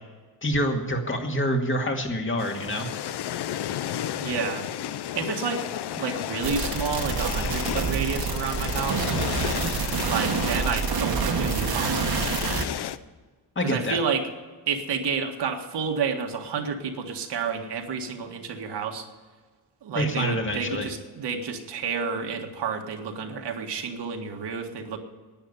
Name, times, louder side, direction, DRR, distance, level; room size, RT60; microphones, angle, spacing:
voice 1, 0.4-2.9 13.6-14.0 20.0-20.9, equal, 30° left, 3 dB, 2.2 m, -26 dB
sound 1, 2.4-13.0, left 11 dB, 70° left, 0.7 m, -33 dB
voice 2, 4.2-4.7 5.1-5.6 6.0-9.2 10.0-12.3 13.6-14.3 14.7-19.1 19.8-25.0, right 5 dB, 75° right, 4 dB, 1.8 m, -30 dB
sound 2, 6.4-12.6, right 6 dB, 60° right, 1.5 m, -27 dB
11.0 x 9.6 x 9.7 m, 1.4 s
cardioid pair, 105°, 41 cm